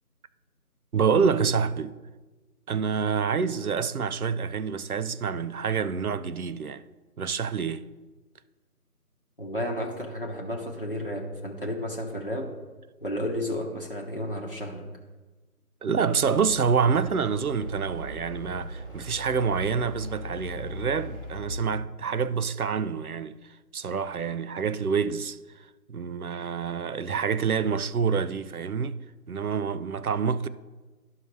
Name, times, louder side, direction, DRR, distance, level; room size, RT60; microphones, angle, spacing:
voice 1, 0.9-2.0 2.7-6.8 7.2-7.9 15.8-23.4 23.7-25.4 25.9-29.0 29.3-30.5, right 6 dB, 70° right, 0.5 m, -27 dB
voice 2, 9.4-12.5 13.0-14.9, equal, 35° left, 0.9 m, -32 dB
sound 1, 16.2-21.5, equal, 35° right, 1.1 m, -39 dB
11.5 x 5.6 x 3.1 m
figure-of-eight pair, 175°, 46 cm